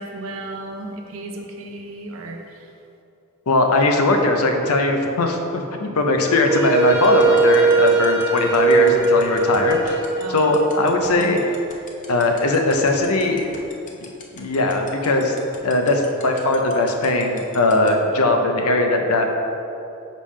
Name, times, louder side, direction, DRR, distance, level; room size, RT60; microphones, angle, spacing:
voice 1, 0.0-2.7 10.2-10.4, right 2 dB, 65° right, 2 dB, 0.6 m, -34 dB
voice 2, 3.5-10.0 10.3-11.4 12.1-13.4 14.4-15.4 15.6-19.3, left 2 dB, 85° left, 4 dB, 0.6 m, -19 dB
Wind instrument woodwind instrument, 6.5-11.4, right 3 dB, 15° right, 0.8 m, -20 dB
sound 1, 7.0-17.9, left 6 dB, 35° left, 0.6 m, -40 dB
5.3 x 3.4 x 5.4 m, 2.7 s
head